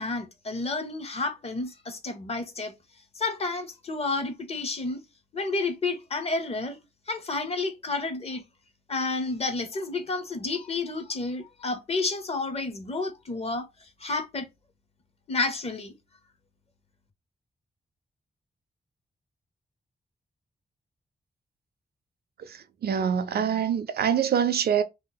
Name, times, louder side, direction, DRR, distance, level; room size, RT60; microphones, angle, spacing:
voice 1, 0.0-2.7 3.2-5.0 5.3-6.8 7.1-8.4 8.9-13.7 14.0-14.5 15.3-15.9, left 3 dB, 40° left, 0.6 m, -30 dB
voice 2, 22.4-24.8, right 8 dB, 70° right, 0.5 m, -25 dB
2.8 x 2.3 x 3.8 m
wide cardioid pair, 125°, 17 cm